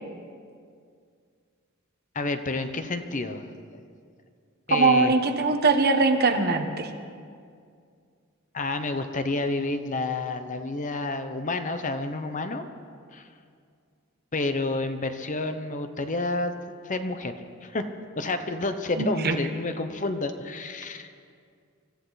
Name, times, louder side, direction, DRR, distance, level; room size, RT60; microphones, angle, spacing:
voice 1, 2.1-3.4 4.7-5.2 8.5-12.7 13.1-13.3 14.3-16.5 16.8-17.4 17.6-17.9 18.2-21.1, left 2 dB, 40° left, 9 dB, 0.9 m, -29 dB
voice 2, 4.7-6.9 19.0-19.4, right 3 dB, 50° right, 5 dB, 1.2 m, -21 dB
25.0 x 14.0 x 4.1 m, 2.2 s
head